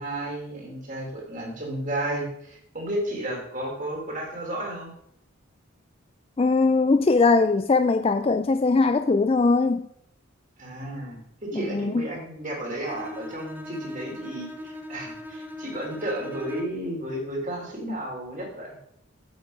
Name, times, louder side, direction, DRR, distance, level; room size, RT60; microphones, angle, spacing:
voice 1, 0.0-4.9 10.6-18.7, right 1 dB, 35° right, 3.1 m, -33 dB
voice 2, 6.4-9.9 11.5-12.1, left 3 dB, 25° left, 0.3 m, -21 dB
Bowed string instrument, 12.8-16.9, left 1 dB, 10° right, 0.7 m, -39 dB
9.2 x 7.6 x 5.3 m
head